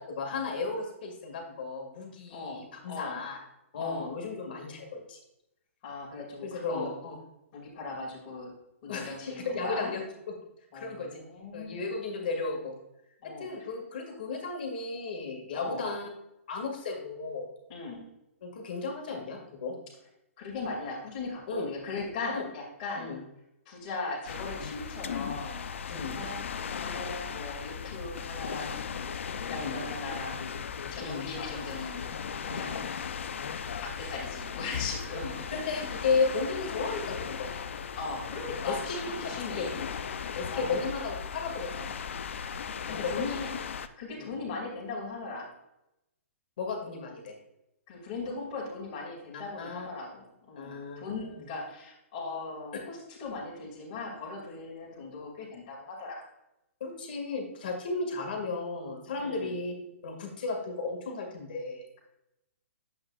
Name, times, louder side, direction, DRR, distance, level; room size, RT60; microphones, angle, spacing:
voice 1, 0.1-3.4 3.7-5.2 6.4-7.1 8.9-10.0 10.7-11.2 11.5-12.7 13.4-16.1 16.5-17.5 18.4-19.7 21.5-21.7 22.3-22.4 23.0-23.2 25.9-26.2 29.5-29.8 31.0-31.3 32.4-32.7 35.2-37.9 38.6-38.8 39.6-39.7 40.4-42.2 42.9-43.2 44.1-44.3 46.6-47.4 49.6-49.9 50.6-51.5 52.7-52.8 56.8-59.7 60.0-61.8, left 4 dB, 40° left, 2 dB, 2.0 m, -34 dB
voice 2, 2.3-3.2 3.8-4.1 5.8-7.0 7.5-8.5 8.8-9.9 10.7-11.9 13.2-13.7 15.5-15.9 17.7-18.1 20.4-23.1 23.7-25.7 26.1-26.4 26.8-28.9 29.5-30.5 30.9-32.1 32.4-32.8 33.8-35.5 37.9-39.8 40.5-40.9 42.9-43.5 44.0-45.5 47.9-56.2 59.2-59.5, left 3 dB, 25° left, -4 dB, 2.2 m, -38 dB
sound 1, 24.3-43.9, left 7 dB, 60° left, 0.5 m, -37 dB
9.7 x 7.9 x 2.4 m, 0.86 s
hypercardioid pair, 175°, 8 cm